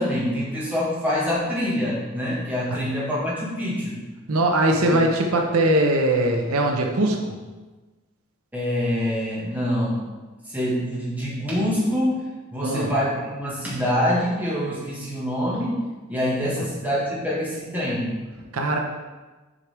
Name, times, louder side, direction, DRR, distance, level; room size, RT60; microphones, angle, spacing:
voice 1, 0.0-4.0 4.7-4.9 8.5-10.0 10.4-12.2 12.5-15.8 16.1-18.4, equal, 10° right, -7 dB, 1.6 m, -25 dB
voice 2, 4.3-7.3 12.6-12.9 18.5-18.8, right 1 dB, 85° right, 2 dB, 0.8 m, -21 dB
7.4 x 4.8 x 3.5 m, 1.2 s
head